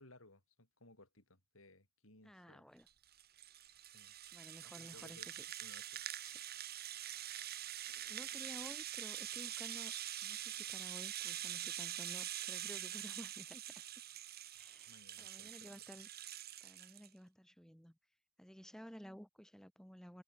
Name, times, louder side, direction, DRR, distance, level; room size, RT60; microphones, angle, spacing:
voice 1, 0.0-2.7 3.8-4.1 4.6-5.3 5.6-6.0 14.9-15.8, left 2 dB, 85° left, 7.7 m, -62 dB
voice 2, 2.2-2.9 4.3-5.6 6.2-6.4 7.9-9.9 10.2-13.8 14.6-16.1 16.6-18.0 18.4-20.2, equal, 5° left, 1.8 m, -54 dB
Rattle (instrument), 2.9-17.1, right 12 dB, 50° right, 1.8 m, -45 dB
head